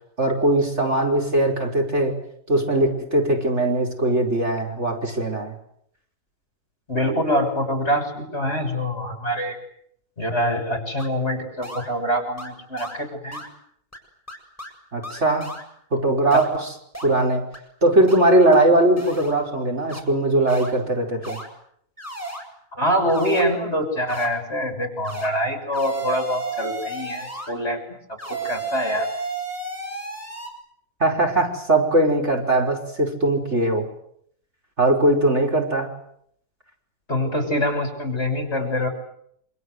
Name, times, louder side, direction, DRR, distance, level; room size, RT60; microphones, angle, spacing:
voice 1, 0.2-2.1 2.5-5.5 14.9-15.5 15.9-16.7 17.0-17.5 17.8-21.4 31.0-33.9 34.8-35.9, right 1 dB, 45° right, 1 dB, 5.6 m, -20 dB
voice 2, 6.9-9.6 10.2-13.4 16.3-16.4 22.7-27.8 28.3-29.1 37.1-38.9, equal, 40° left, 6 dB, 6.9 m, -24 dB
sound 1, 11.0-11.1 11.6-11.9 12.4-12.5 12.8-13.0 13.3-13.5 13.9-14.0 14.3-14.7 15.0-15.6 16.3-16.5 16.9-17.1 17.5-17.6 18.1-18.2 18.5-18.6 19.0-19.3 19.9-20.0 20.5-20.7 21.2-21.5 22.0-22.4 23.1-23.4 24.1-24.3 25.0-25.3 25.7-27.5 28.2-30.5, right 2 dB, 10° left, 7.2 m, -33 dB
27.5 x 26.5 x 8.1 m, 0.70 s
omnidirectional pair, 1.6 m